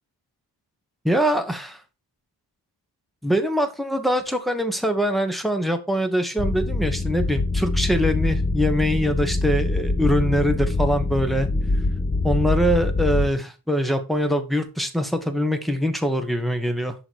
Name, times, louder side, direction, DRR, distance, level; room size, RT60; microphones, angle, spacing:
voice 1, 1.0-1.8 3.2-11.5 12.2-16.9, equal, ahead, 7 dB, 1.1 m, -23 dB
sound 1, 6.4-13.3, left 2 dB, 15° left, 0.6 m, -24 dB
11.0 x 4.0 x 4.6 m, 0.31 s
wide cardioid pair, 160°, 41 cm